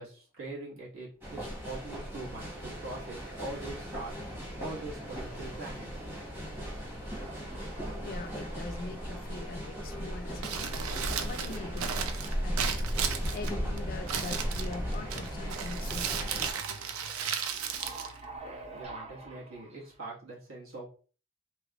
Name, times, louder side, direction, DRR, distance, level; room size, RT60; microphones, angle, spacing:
voice 1, 0.0-4.2 4.6-6.0 18.7-20.9, right 2 dB, 70° right, 1.5 m, -42 dB
sound 1, 1.2-16.5, equal, 10° right, 1.0 m, -37 dB
sound 2, 6.4-6.8 7.1-10.2 10.6-12.8 13.1-13.2 14.0-20.0, right 2 dB, 30° right, 0.6 m, -49 dB
voice 2, 8.0-12.1 12.4-12.7 13.3-16.7, left 3 dB, 45° left, 0.4 m, -43 dB
Crumpling crinkling, 10.3-18.8, right 7 dB, 85° right, 0.5 m, -36 dB
3.4 x 3.1 x 2.4 m
head